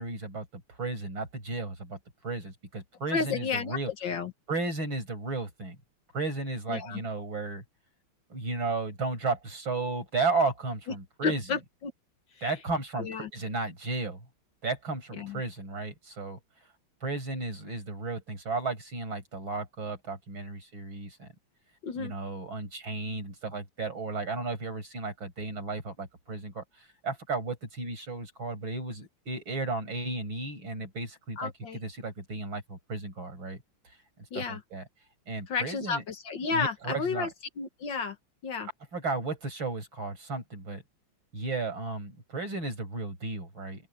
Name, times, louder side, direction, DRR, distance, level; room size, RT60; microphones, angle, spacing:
voice 1, 0.0-2.0 2.2-3.9 4.5-5.8 6.1-7.6 8.3-11.4 12.4-14.3 14.6-16.4 17.0-21.3 22.0-33.6 34.3-34.8 35.3-36.0 36.5-37.3 38.9-40.8 41.3-43.9, right 3 dB, 60° right, 6.9 m, -34 dB
voice 2, 3.1-4.3 6.7-7.0 11.2-11.9 13.0-13.3 15.1-15.4 21.8-22.1 31.4-31.8 34.3-34.6 35.5-37.3 37.6-38.2 38.4-38.7, left 5 dB, 60° left, 1.9 m, -32 dB
open air
omnidirectional pair, 2.4 m